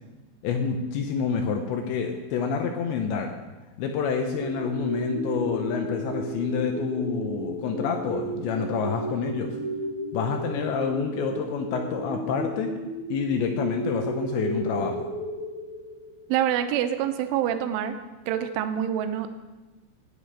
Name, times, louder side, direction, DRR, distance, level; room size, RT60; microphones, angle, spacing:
voice 1, 0.4-3.3 3.8-9.5 10.1-12.7 13.1-15.1, left 6 dB, 80° left, 4 dB, 2.8 m, -28 dB
sound 1, 4.2-16.7, right 1 dB, 25° left, 3.5 m, -33 dB
voice 2, 16.3-18.0 18.3-19.3, right 10 dB, 85° right, 8 dB, 3.1 m, -26 dB
9.5 x 8.4 x 8.5 m, 1.2 s
omnidirectional pair, 5.8 m